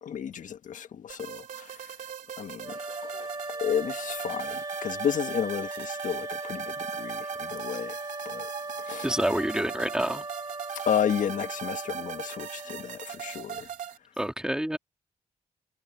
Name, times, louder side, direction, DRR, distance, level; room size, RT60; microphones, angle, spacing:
voice 1, 0.0-1.9 2.4-8.0 8.2-8.5 8.8-9.2 10.7-13.7, left 9 dB, 70° left, 1.7 m, -32 dB
sound 1, 1.1-14.0, right 9 dB, 80° right, 2.8 m, -40 dB
sound 2, 2.6-13.5, right 2 dB, 30° right, 5.3 m, -38 dB
voice 2, 9.0-10.2 14.2-14.8, equal, 5° right, 2.7 m, -28 dB
supercardioid pair, 55°, 13 cm